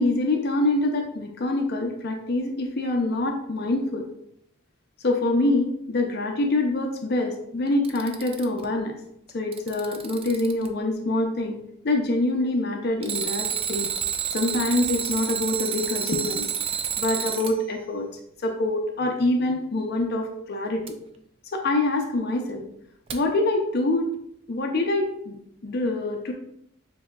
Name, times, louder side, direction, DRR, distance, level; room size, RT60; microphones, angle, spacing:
voice 1, 0.0-4.1 5.0-9.0 9.3-13.9 14.3-16.5 17.0-18.1 18.4-20.8 21.5-22.6 23.1-24.1 24.5-25.4 25.6-26.3, left 2 dB, 50° left, 3 dB, 0.5 m, -25 dB
Alarm, 7.7-8.6 9.3-10.7 13.0-17.5 20.9-21.0 23.1-23.2, right 8 dB, 25° right, 0.3 m, -29 dB
6.9 x 2.7 x 2.3 m, 0.74 s
head